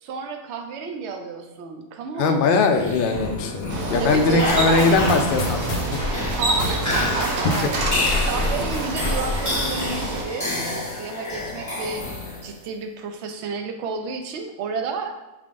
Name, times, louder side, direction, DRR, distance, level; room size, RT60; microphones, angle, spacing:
voice 1, 0.0-2.5 4.0-5.3 6.4-7.9 8.2-12.1 12.4-15.2, right 5 dB, 65° right, 4 dB, 0.8 m, -31 dB
voice 2, 2.2-5.6 5.9-6.0, left 4 dB, 70° left, 4 dB, 0.5 m, -20 dB
sound 1, 2.7-12.6, left 2 dB, 15° left, 0.9 m, -29 dB
Bicycle, 3.7-10.2, right 2 dB, 80° right, 1.1 m, -28 dB
sound 2, 4.5-9.6, left 2 dB, 50° left, 1.0 m, -29 dB
4.7 x 3.6 x 2.5 m, 1.1 s
omnidirectional pair, 1.4 m